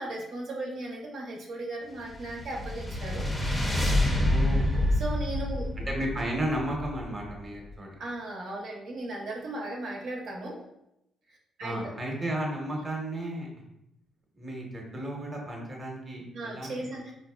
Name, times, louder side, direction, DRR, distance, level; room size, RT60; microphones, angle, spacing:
voice 1, 0.0-3.3 5.0-5.7 8.0-10.6 11.3-11.9 16.3-17.1, right 1 dB, 70° right, -3 dB, 0.7 m, -36 dB
sound 1, 2.0-7.4, left 1 dB, 10° left, 0.6 m, -28 dB
voice 2, 4.3-5.0 5.8-8.0 11.6-13.5 14.3-17.1, right 1 dB, 25° right, -1 dB, 0.8 m, -34 dB
4.0 x 2.5 x 2.3 m, 0.84 s
cardioid pair, 90°, 0 cm